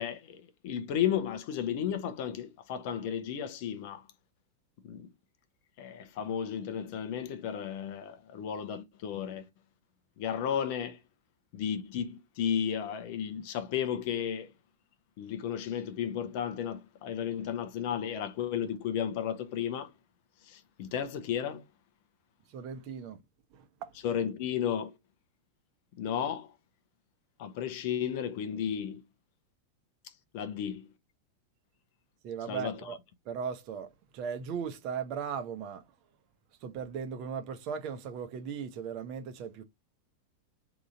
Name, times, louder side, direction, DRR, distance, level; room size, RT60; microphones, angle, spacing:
voice 1, 0.0-4.1 4.8-5.1 5.8-9.5 10.2-11.0 11.5-14.5 15.2-19.9 20.4-21.6 24.0-25.0 26.0-26.5 27.4-29.0 30.0-30.9 32.5-33.0, left 9 dB, 45° left, 0.8 m, -33 dB
voice 2, 22.5-23.2 23.5-23.9 32.2-33.0 33.3-35.8 36.6-39.6, right 7 dB, 40° right, 0.9 m, -37 dB
3.8 x 3.0 x 3.7 m
figure-of-eight pair, 90°, 0 cm